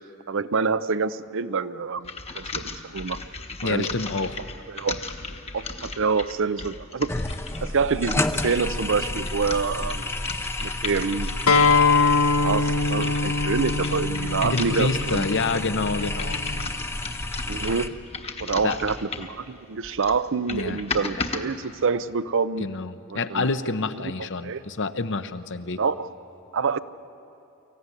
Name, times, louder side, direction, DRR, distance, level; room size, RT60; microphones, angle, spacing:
voice 1, 0.3-2.1 2.3-3.2 3.6-3.9 4.7-5.0 5.5-7.1 7.6-10.1 10.6-11.3 12.0-12.1 12.4-15.3 17.5-18.0 18.4-22.7 23.1-23.5 24.4-24.6 25.7-26.1 26.5-26.8, right 5 dB, 60° right, 15 dB, 0.6 m, -26 dB
sound 1, 2.0-11.9 12.4-19.4 19.8-21.4, left 3 dB, 30° left, 1.1 m, -36 dB
voice 2, 3.6-4.4 14.4-16.5 18.6-18.8 20.5-20.8 22.6-25.8, left 3 dB, 55° left, 10 dB, 0.8 m, -28 dB
sound 2, 7.1-17.9, left 2 dB, 10° left, 0.6 m, -30 dB
Acoustic guitar, 11.5-16.7, left 4 dB, 75° left, 1.4 m, -23 dB
24.5 x 15.0 x 9.8 m, 2.7 s
head